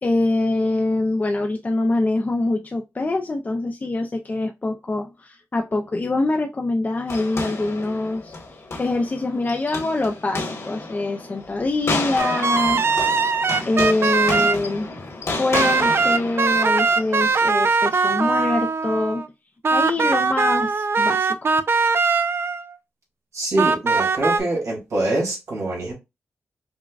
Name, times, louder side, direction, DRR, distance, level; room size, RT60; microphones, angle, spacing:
voice 1, 0.0-12.8 13.6-14.9 15.4-19.2 19.7-21.5, left 2 dB, 35° left, 0.5 m, -24 dB
sound 1, 7.1-17.4, left 2 dB, 65° left, 1.5 m, -31 dB
sound 2, 12.2-14.6 15.5-19.3 19.6-22.7 23.6-24.4, right 4 dB, 55° right, 0.4 m, -20 dB
voice 2, 23.3-25.9, right 2 dB, 80° right, 2.3 m, -24 dB
5.2 x 2.2 x 2.4 m
cardioid pair, 75°, 5 cm